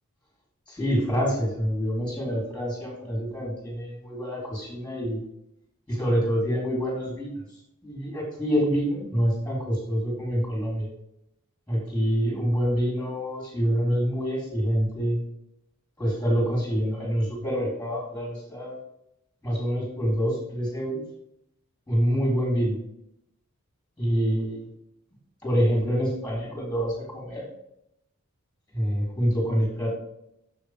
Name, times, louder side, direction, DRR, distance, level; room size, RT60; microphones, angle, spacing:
voice 1, 0.7-5.2 5.9-7.4 7.8-10.9 11.7-15.2 16.0-18.8 19.4-21.0 21.9-22.8 24.0-24.7 25.4-27.4 28.7-29.9, equal, 5° left, -5 dB, 3.9 m, -26 dB
7.5 x 7.1 x 5.1 m, 0.79 s
head